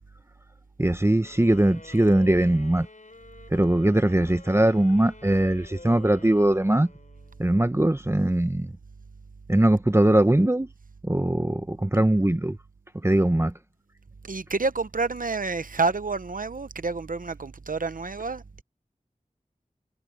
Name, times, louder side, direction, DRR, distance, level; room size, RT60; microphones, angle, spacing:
voice 1, 0.8-2.9 3.5-6.9 7.4-8.7 9.5-10.7 11.0-12.6 13.0-13.5, right 1 dB, 20° right, 0.8 m, -21 dB
sound 1, 1.2-7.6, left 2 dB, 65° left, 5.8 m, -48 dB
voice 2, 14.2-18.6, right 4 dB, 75° right, 0.8 m, -29 dB
wide cardioid pair, 50°, 14 cm